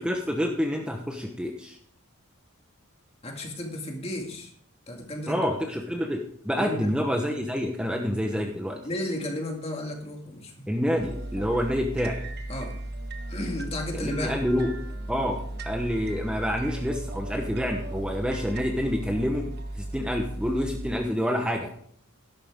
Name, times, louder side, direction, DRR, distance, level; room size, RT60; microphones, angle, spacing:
voice 1, 0.0-1.8 5.3-8.8 10.7-12.2 13.9-14.7 15.1-19.5 19.7-21.7, equal, 5° right, 2 dB, 1.0 m, -28 dB
voice 2, 3.2-4.5 4.9-5.5 6.6-6.9 8.8-10.7 12.5-12.8 13.3-14.4, left 1 dB, 30° left, 2 dB, 2.1 m, -33 dB
sound 1, 11.0-21.0, right 1 dB, 50° right, 1.3 m, -36 dB
12.5 x 11.5 x 3.7 m, 0.63 s
head